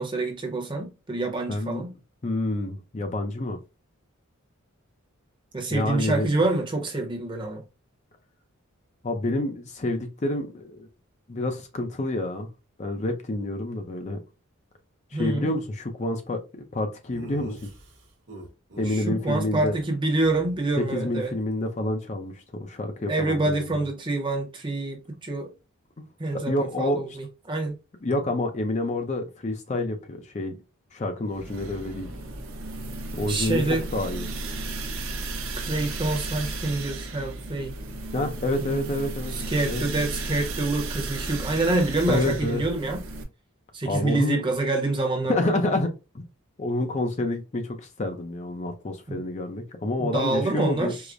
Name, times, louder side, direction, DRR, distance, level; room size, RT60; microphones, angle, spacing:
voice 1, 0.0-1.9 5.5-7.6 15.1-15.5 18.9-21.3 23.1-25.5 26.2-27.8 33.2-33.8 35.6-37.7 38.6-38.9 39.5-43.0 43.7-45.5 49.1-49.2 50.0-51.0, right 2 dB, 25° right, 0.7 m, -27 dB
voice 2, 1.5-1.8 2.2-3.6 5.7-6.3 9.0-10.9 11.3-12.5 12.8-14.2 15.1-16.4 16.7-17.7 18.8-19.8 20.9-22.3 22.6-23.8 26.3-27.2 28.0-30.5 30.9-32.1 33.2-34.3 38.1-39.3 39.7-39.8 42.1-42.6 43.8-44.4 45.3-46.2 46.6-50.9, left 1 dB, 35° left, 0.5 m, -28 dB
Laughter, 17.1-18.9 19.2-19.4 19.6-19.8 20.1-21.7, right 1 dB, 55° right, 1.1 m, -45 dB
sound 1, 31.3-43.2, right 2 dB, 75° right, 0.7 m, -34 dB
4.7 x 2.0 x 2.5 m
head